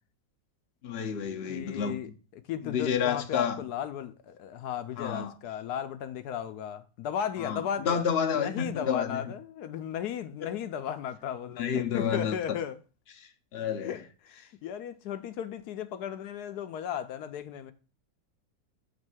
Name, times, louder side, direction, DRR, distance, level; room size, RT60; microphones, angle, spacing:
voice 1, 0.8-1.9 2.6-3.6 5.0-5.4 7.4-9.3 10.4-10.5 11.6-12.4 13.2-14.0, left 7 dB, 55° left, 0.7 m, -30 dB
voice 2, 1.5-2.1 2.5-8.0 8.3-12.8 13.8-17.7, left 9 dB, 70° left, 1.1 m, -35 dB
7.5 x 3.2 x 6.1 m
omnidirectional pair, 1.9 m